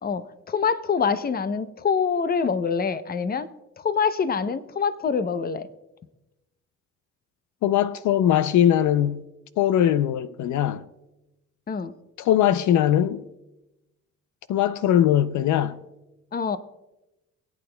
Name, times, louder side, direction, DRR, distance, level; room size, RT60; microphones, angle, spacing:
voice 1, 0.0-3.5 3.8-5.7 11.7-11.9 16.3-16.6, left 6 dB, 30° left, 0.7 m, -25 dB
voice 2, 7.6-9.3 9.6-10.9 12.2-13.2 14.5-15.8, left 11 dB, 70° left, 0.5 m, -21 dB
23.5 x 8.7 x 2.2 m
cardioid pair, 90°, 30 cm